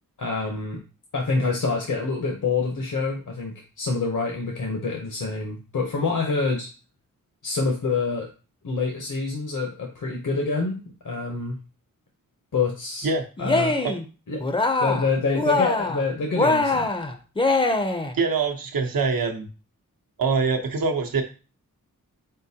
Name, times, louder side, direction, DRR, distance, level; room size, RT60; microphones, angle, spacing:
voice 1, 0.2-0.8 1.1-6.7 7.4-8.3 8.6-10.8 11.0-11.6 12.5-13.1 13.4-13.8 14.3-14.4 14.8-16.9, left 4 dB, 60° left, 1 dB, 0.8 m, -26 dB
Cheering, 13.4-14.0 14.4-15.1 15.3-16.0 16.4-18.1, left 2 dB, 15° left, 0.5 m, -23 dB
voice 2, 18.1-19.5 20.2-21.2, right 4 dB, 80° right, 3 dB, 0.8 m, -24 dB
4.1 x 3.7 x 2.7 m, 0.34 s
wide cardioid pair, 95°, 34 cm